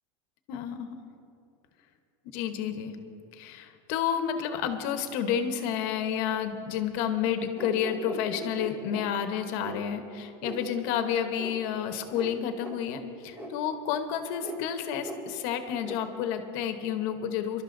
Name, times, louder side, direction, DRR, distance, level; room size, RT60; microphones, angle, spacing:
voice 1, 0.5-1.0 2.3-3.0 3.3-17.6, left 8 dB, 50° left, 8 dB, 0.9 m, -30 dB
sound 1, 7.5-9.1 9.6-9.8 10.4-10.6 11.4-11.5 12.1-12.3 12.6-12.8 13.3-13.5 14.4-14.6 15.0-15.2 15.8-16.0, equal, 10° right, 0.9 m, -39 dB
29.0 x 12.0 x 2.6 m, 2.7 s
supercardioid pair, 170°, 15 cm